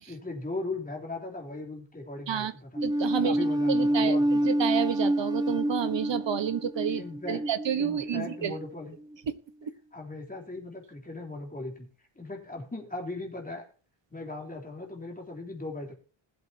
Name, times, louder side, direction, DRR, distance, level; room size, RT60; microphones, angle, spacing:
voice 1, 0.1-2.8 3.1-4.5 6.9-7.4 7.8-9.0 9.9-11.9 12.2-13.6 14.1-15.9, left 2 dB, 15° left, 0 dB, 3.5 m, -38 dB
sound 1, 2.8-9.2, right 1 dB, 10° right, 0.8 m, -28 dB
voice 2, 2.8-8.6 9.3-9.7, right 9 dB, 60° right, 13 dB, 1.3 m, -30 dB
20.0 x 7.9 x 2.9 m, 0.38 s
wide cardioid pair, 145°, 49 cm